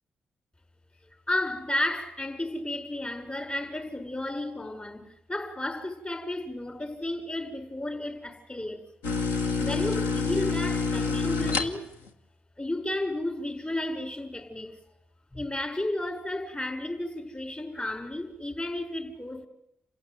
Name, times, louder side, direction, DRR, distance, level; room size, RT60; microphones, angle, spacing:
voice 1, 1.3-8.8 9.6-11.9 12.6-14.8 15.3-19.5, left 1 dB, 30° left, 6.1 m, -33 dB
sound 1, 9.0-12.1, left 4 dB, 90° left, 1.4 m, -27 dB
28.5 x 15.5 x 9.6 m
hypercardioid pair, 40°, 4 cm